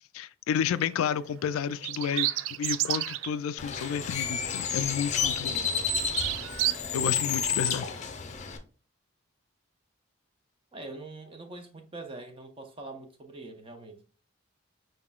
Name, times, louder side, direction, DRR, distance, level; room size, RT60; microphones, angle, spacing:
voice 1, 0.1-5.6 6.9-7.9, left 7 dB, 90° left, 0.3 m, -31 dB
sound 1, 0.7-0.9 1.7-3.3 3.8-3.9 4.3-5.1 5.4-6.8, right 14 dB, 75° right, 0.3 m, -31 dB
Bird, 3.6-8.6, left 7 dB, 35° left, 0.5 m, -30 dB
voice 2, 5.3-5.9 10.7-14.0, right 2 dB, 25° right, 0.7 m, -44 dB
5.4 x 3.6 x 2.3 m
head